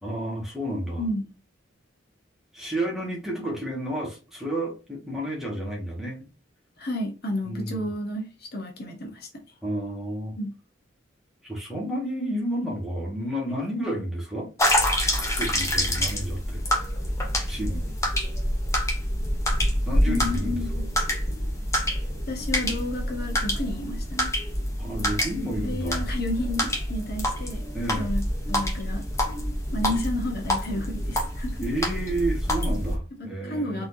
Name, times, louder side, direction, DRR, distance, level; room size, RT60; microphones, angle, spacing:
voice 1, 0.0-1.0 2.5-6.3 7.5-7.9 9.6-10.4 11.4-14.5 15.2-16.6 17.5-17.9 19.8-20.6 24.8-26.1 27.7-28.1 31.6-33.9, right 1 dB, ahead, 1.9 m, -31 dB
voice 2, 6.8-9.3 10.4-10.5 20.0-20.9 22.3-24.3 25.6-27.6 27.9-28.2 28.5-29.1 29.7-31.6 33.2-33.9, left 1 dB, 50° left, 1.2 m, -31 dB
sound 1, 14.6-33.0, equal, 15° left, 1.0 m, -27 dB
4.5 x 4.1 x 2.8 m
head